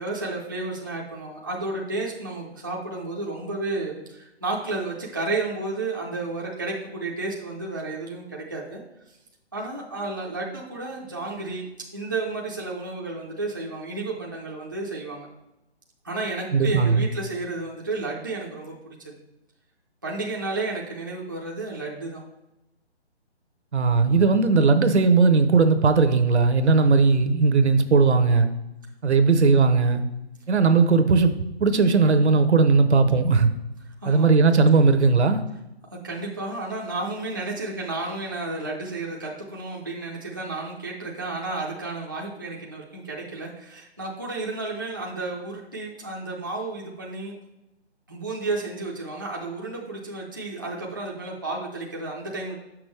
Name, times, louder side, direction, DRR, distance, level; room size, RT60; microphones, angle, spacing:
voice 1, 0.0-8.8 9.5-15.3 16.0-19.0 20.0-22.2 34.0-34.3 35.9-47.3 48.1-52.5, right 3 dB, 20° right, -4 dB, 0.5 m, -32 dB
voice 2, 16.5-17.1 23.7-28.5 29.0-30.0 30.5-33.5 34.1-35.4, right 4 dB, 75° right, 9 dB, 0.9 m, -18 dB
7.3 x 6.1 x 3.3 m, 0.93 s
hypercardioid pair, 170°, 34 cm